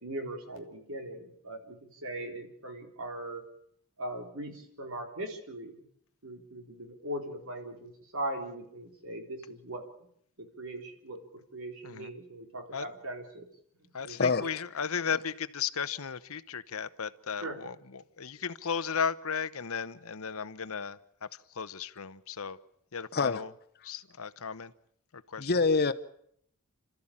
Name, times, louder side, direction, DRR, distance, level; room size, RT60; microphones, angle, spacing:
voice 1, 0.0-3.4 4.0-5.7 6.2-9.9 10.4-13.5 13.8-14.5 17.4-17.6, right 1 dB, 65° right, 4 dB, 4.0 m, -40 dB
voice 2, 13.9-21.3 21.5-22.6 22.9-23.5 23.8-24.7 25.1-25.5, left 6 dB, 65° left, 14 dB, 0.9 m, -35 dB
voice 3, 25.4-25.9, left 4 dB, 45° left, 11 dB, 1.0 m, -25 dB
30.0 x 13.5 x 8.7 m, 0.69 s
head